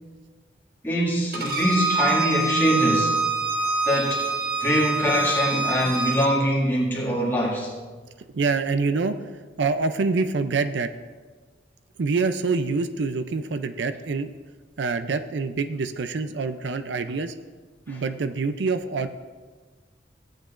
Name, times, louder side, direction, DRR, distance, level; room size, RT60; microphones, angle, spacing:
voice 1, 0.8-3.2 3.8-4.2 4.6-7.7 17.9-18.0, equal, 10° left, -5 dB, 2.0 m, -23 dB
Bowed string instrument, 1.3-6.3, right 3 dB, 55° right, 1.4 m, -25 dB
voice 2, 8.3-9.2 9.6-10.9 12.0-14.3 14.8-17.3 17.9-19.1, right 4 dB, 75° right, 10 dB, 0.5 m, -26 dB
16.0 x 8.9 x 2.5 m, 1.4 s
head